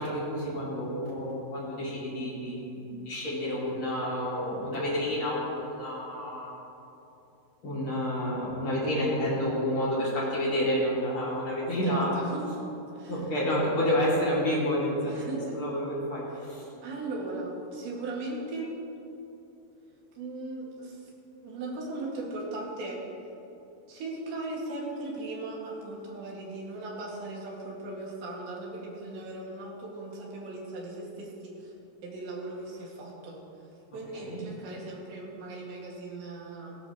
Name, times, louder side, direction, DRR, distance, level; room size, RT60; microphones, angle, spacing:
voice 1, 0.0-6.5 7.6-12.2 13.1-16.6 34.1-34.4, equal, 30° left, -6 dB, 3.4 m, -29 dB
voice 2, 11.8-12.4 12.9-13.3 15.0-15.6 16.3-16.5 16.8-18.7 20.2-21.1 21.4-23.0 23.9-31.7 32.0-33.4 33.9-36.8, right 2 dB, 80° right, -4 dB, 4.6 m, -38 dB
17.0 x 16.5 x 3.3 m, 2.9 s
omnidirectional pair, 5.0 m